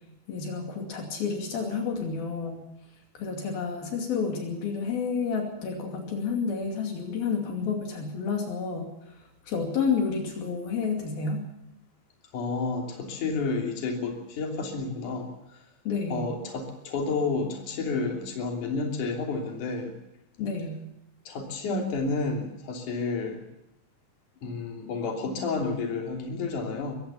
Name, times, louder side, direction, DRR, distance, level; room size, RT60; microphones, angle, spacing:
voice 1, 0.3-2.6 3.1-8.9 9.5-11.4 15.9-16.2 20.4-20.8, left 5 dB, 75° left, 3 dB, 4.4 m, -30 dB
voice 2, 12.3-15.3 16.1-19.9 21.3-23.4 24.4-27.0, left 4 dB, 55° left, 2 dB, 4.4 m, -30 dB
22.5 x 16.0 x 7.2 m, 0.88 s
omnidirectional pair, 4.3 m